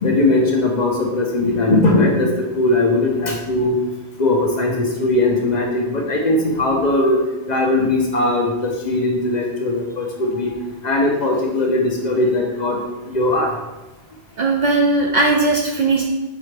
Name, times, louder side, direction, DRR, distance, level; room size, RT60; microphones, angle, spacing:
voice 1, 0.0-3.8 4.2-7.2 7.5-10.5 10.8-12.8 13.0-13.5, left 2 dB, 50° left, 0 dB, 0.7 m, -19 dB
voice 2, 14.4-16.1, right 3 dB, 55° right, 0 dB, 0.5 m, -18 dB
4.8 x 3.4 x 3.3 m, 1.1 s
omnidirectional pair, 1.1 m